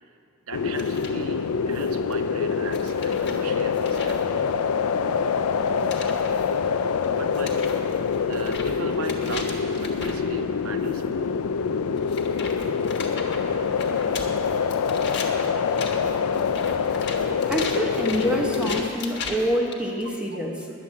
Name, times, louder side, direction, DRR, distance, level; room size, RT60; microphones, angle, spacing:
sound 1, 0.5-18.9, left 6 dB, 85° left, 0.4 m, -25 dB
voice 1, 0.5-4.3 7.1-7.6 8.3-11.3 20.0-20.1, right 3 dB, 80° right, 7 dB, 0.9 m, -37 dB
sound 2, 0.8-1.2 1.7-2.1 2.7-4.2 5.7-6.5 7.0-7.1 7.3-10.2 10.9-11.0 12.0-19.7, left 4 dB, 50° left, 1.4 m, -37 dB
sound 3, 5.0-10.5, right 3 dB, 20° left, 1.0 m, -47 dB
voice 2, 17.5-20.7, equal, 5° right, 0 dB, 1.0 m, -26 dB
10.0 x 10.0 x 7.4 m, 2.5 s
head